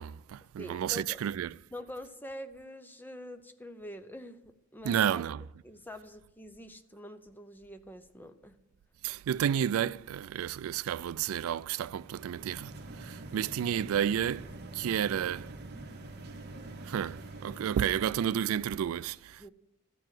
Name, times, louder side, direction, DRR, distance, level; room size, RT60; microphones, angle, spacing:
voice 1, 0.0-1.5 4.8-5.5 9.0-15.5 16.8-19.5, right 9 dB, 75° right, 0.3 m, -31 dB
voice 2, 0.6-1.2 1.7-5.2 5.6-8.6 19.4-19.5, left 1 dB, 10° left, 0.6 m, -45 dB
sound 1, 11.9-18.5, right 2 dB, 50° right, 1.0 m, -46 dB
13.0 x 4.7 x 7.7 m
head